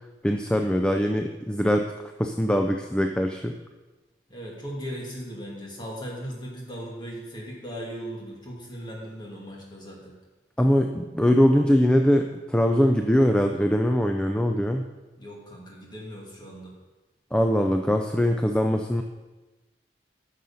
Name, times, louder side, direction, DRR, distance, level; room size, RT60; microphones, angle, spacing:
voice 1, 0.2-1.9 2.2-3.6 10.6-14.8 17.3-19.0, equal, 5° left, 4 dB, 0.4 m, -22 dB
voice 2, 4.3-10.1 15.2-16.7, equal, 25° left, -2 dB, 2.1 m, -38 dB
9.5 x 6.5 x 5.5 m, 1.2 s
head